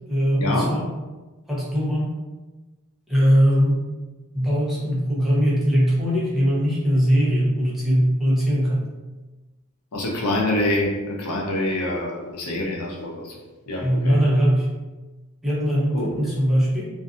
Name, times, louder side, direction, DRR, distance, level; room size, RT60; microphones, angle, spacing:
voice 1, 0.1-0.9 1.5-2.1 3.1-3.8 4.3-8.8 13.8-14.7 15.4-16.9, equal, ahead, -7 dB, 0.6 m, -20 dB
voice 2, 9.9-13.3 13.7-14.2 15.9-16.1, left 1 dB, 85° left, -2 dB, 0.6 m, -25 dB
2.6 x 2.5 x 2.4 m, 1.2 s
head